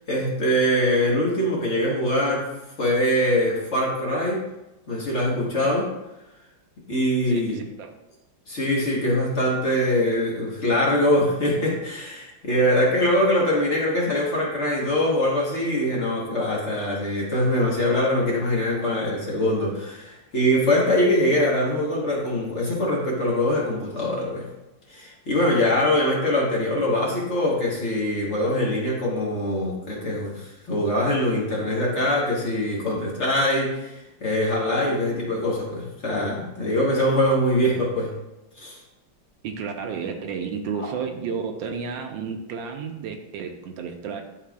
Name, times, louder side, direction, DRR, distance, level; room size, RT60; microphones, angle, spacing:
voice 1, 0.1-2.5 2.8-4.4 4.9-5.9 6.9-7.6 8.5-24.5 24.9-38.1 38.6-38.8, left 1 dB, 40° left, -4 dB, 1.3 m, -23 dB
voice 2, 7.3-7.9 39.4-44.2, right 6 dB, 80° right, 5 dB, 1.4 m, -32 dB
11.0 x 4.1 x 2.3 m, 0.96 s
omnidirectional pair, 2.1 m